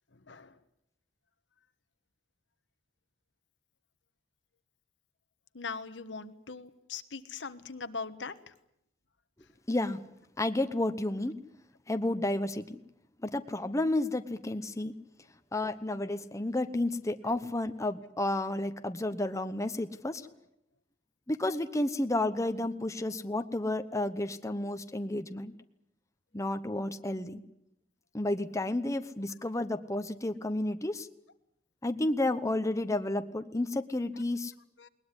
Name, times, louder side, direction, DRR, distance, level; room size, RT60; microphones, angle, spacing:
voice 1, 5.5-8.3 34.8-34.9, left 4 dB, 80° left, 11 dB, 1.3 m, -40 dB
voice 2, 9.7-10.0 10.4-11.3 11.9-12.8 13.2-14.9 15.5-20.2 21.3-25.5 26.3-27.4 28.1-31.1 31.8-34.5, left 1 dB, 15° left, 9 dB, 0.9 m, -31 dB
21.0 x 20.0 x 9.8 m, 0.79 s
head